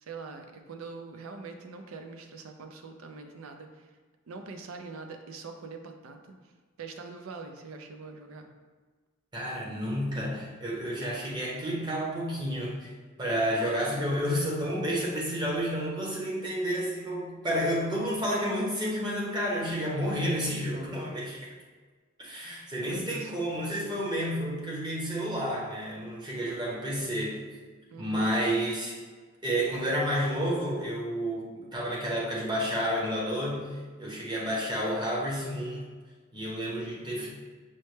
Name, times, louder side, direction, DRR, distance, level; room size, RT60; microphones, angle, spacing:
voice 1, 0.0-3.9 4.3-6.3 6.8-8.5 22.8-23.3 27.9-28.3, right 4 dB, 80° right, 5 dB, 0.4 m, -43 dB
voice 2, 9.3-12.9 13.2-21.5 22.2-27.4 28.0-29.0 29.4-35.8 36.3-37.3, equal, 20° right, -4 dB, 0.7 m, -30 dB
5.5 x 2.1 x 3.1 m, 1.4 s
head